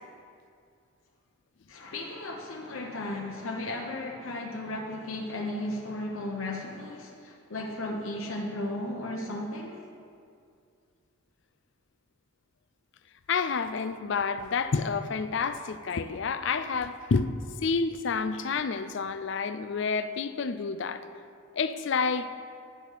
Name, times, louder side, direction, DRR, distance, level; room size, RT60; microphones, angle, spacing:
voice 1, 1.7-9.8, left 1 dB, 90° left, 0 dB, 0.9 m, -35 dB
voice 2, 13.3-17.3 17.6-21.0 21.5-22.3, left 5 dB, 60° left, 11 dB, 0.4 m, -29 dB
11.0 x 6.4 x 5.1 m, 2.3 s
head